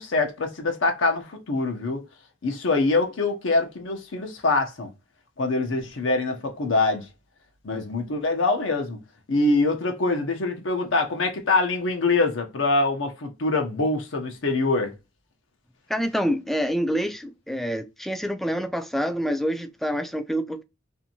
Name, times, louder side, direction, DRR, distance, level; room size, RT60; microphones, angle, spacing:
voice 1, 0.0-2.0 2.4-4.9 5.4-7.1 7.6-9.0 9.3-14.9, left 3 dB, 75° left, 0.7 m, -24 dB
voice 2, 15.9-20.6, equal, ahead, 0.3 m, -27 dB
2.6 x 2.5 x 2.7 m
head